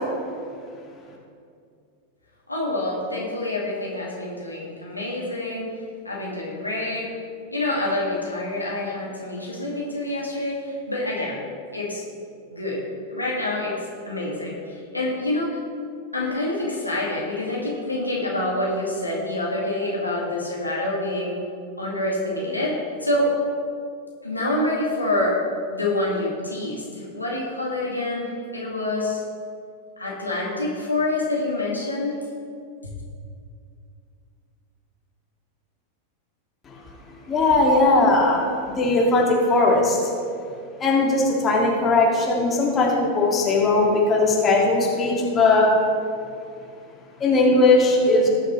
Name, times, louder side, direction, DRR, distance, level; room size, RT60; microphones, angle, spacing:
voice 1, 2.5-5.7 6.0-7.1 7.5-11.4 11.7-12.0 12.5-12.8 13.1-13.8 14.1-15.6 16.1-21.4 21.8-23.3 24.2-25.4 25.7-29.2 30.0-32.2 32.8-32.9, left 1 dB, 85° left, -4 dB, 2.0 m, -27 dB
voice 2, 37.3-40.0 40.8-45.7 47.2-48.3, left 2 dB, 20° left, -3 dB, 2.1 m, -19 dB
18.5 x 6.6 x 3.2 m, 2.4 s
figure-of-eight pair, 90°, 0 cm